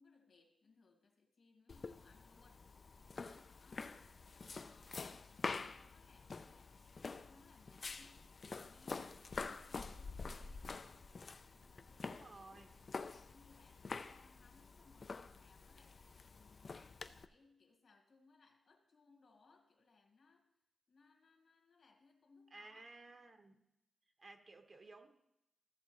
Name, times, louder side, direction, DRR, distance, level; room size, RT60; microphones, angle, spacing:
voice 1, 0.0-2.7 3.1-4.1 4.4-11.2 11.6-12.8 13.1-20.5 20.9-22.9, left 4 dB, 60° left, 3 dB, 1.7 m, -68 dB
sound 1, 1.7-17.3, left 4 dB, 45° left, 0.4 m, -48 dB
voice 2, 12.0-12.7 22.5-23.6 24.2-25.1, right 2 dB, 40° right, 5 dB, 1.0 m, -56 dB
14.5 x 6.7 x 3.0 m, 0.85 s
wide cardioid pair, 100°, 0 cm